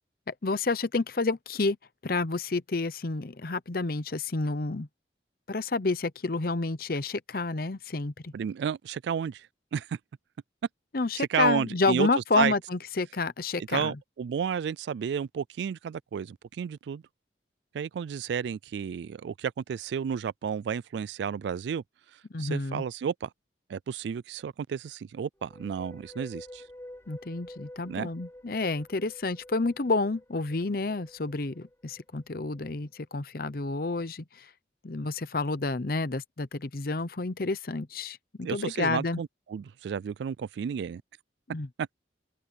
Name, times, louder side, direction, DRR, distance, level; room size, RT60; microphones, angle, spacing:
voice 1, 0.3-1.8 2.0-4.9 5.5-8.3 10.9-13.9 22.3-22.8 27.1-34.5 34.8-39.2 41.5-41.7, left 3 dB, 50° left, 0.8 m, -29 dB
voice 2, 8.3-9.5 9.7-10.0 11.2-12.5 13.7-17.0 17.7-21.8 22.4-23.3 23.7-26.6 27.9-28.1 38.4-41.0 41.8-41.9, right 7 dB, 70° right, 0.3 m, -32 dB
sound 1, 25.4-32.7, left 1 dB, 15° left, 5.3 m, -49 dB
head